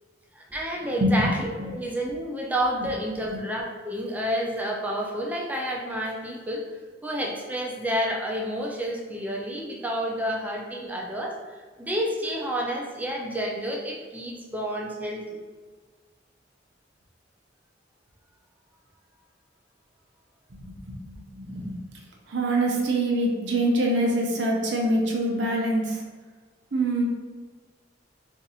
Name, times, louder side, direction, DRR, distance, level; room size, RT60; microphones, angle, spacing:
voice 1, 0.3-6.6 7.0-15.4, equal, 10° right, -1 dB, 0.4 m, -30 dB
voice 2, 1.0-1.3 1.6-1.7 2.8-2.9 3.3-3.4 20.5-21.8 22.3-26.0 26.7-27.0, right 1 dB, 70° right, -1 dB, 0.7 m, -25 dB
2.6 x 2.5 x 4.0 m, 1.4 s
head